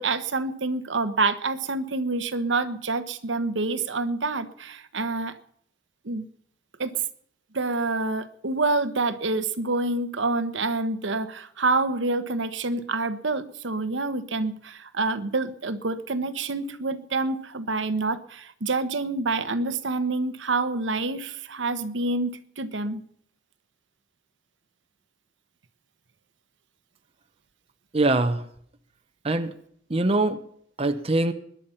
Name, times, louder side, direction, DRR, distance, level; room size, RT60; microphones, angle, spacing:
voice 1, 0.0-5.4 6.0-6.2 6.8-7.0 7.5-23.0, right 3 dB, 75° right, 10 dB, 1.1 m, -27 dB
voice 2, 27.9-28.4 29.2-29.5 29.9-30.4 30.8-31.3, right 2 dB, 30° right, 8 dB, 1.0 m, -23 dB
21.5 x 10.5 x 5.8 m, 0.65 s
head